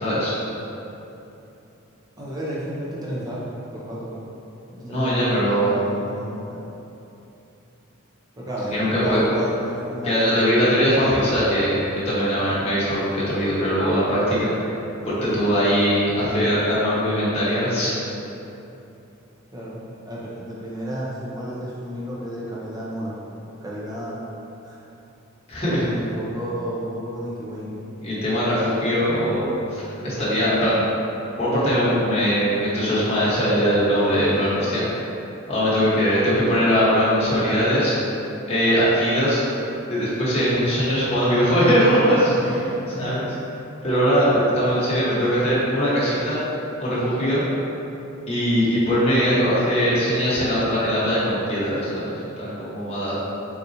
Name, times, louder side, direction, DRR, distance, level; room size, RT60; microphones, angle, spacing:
voice 1, 0.0-0.3 4.8-5.7 8.7-9.2 10.0-14.5 15.0-17.9 25.5-25.9 28.0-29.4 29.7-30.8 31.4-34.8 35.5-38.0 38.5-39.4 39.9-42.5 43.0-43.3 43.8-46.4 46.8-47.4 48.3-53.2, equal, 30° left, -9 dB, 1.2 m, -21 dB
voice 2, 2.2-4.2 4.7-6.6 8.4-10.4 15.0-15.4 19.5-23.2 23.6-24.2 24.6-24.8 25.6-27.8 42.4-43.2, right 1 dB, 20° right, -7 dB, 0.7 m, -32 dB
4.1 x 4.0 x 2.7 m, 2.9 s
head